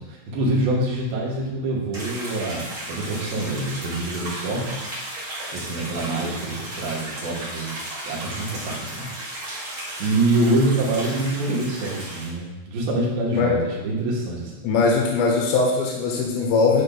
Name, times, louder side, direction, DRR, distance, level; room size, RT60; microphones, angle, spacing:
voice 1, 0.0-4.8 5.5-7.8 8.0-9.1 10.0-14.7, right 2 dB, 75° right, -4 dB, 3.1 m, -25 dB
sound 1, 1.9-12.3, right 1 dB, 35° right, 2.3 m, -34 dB
voice 2, 14.6-16.8, left 4 dB, 80° left, -1 dB, 2.7 m, -20 dB
10.5 x 5.1 x 2.3 m, 1.1 s
omnidirectional pair, 4.2 m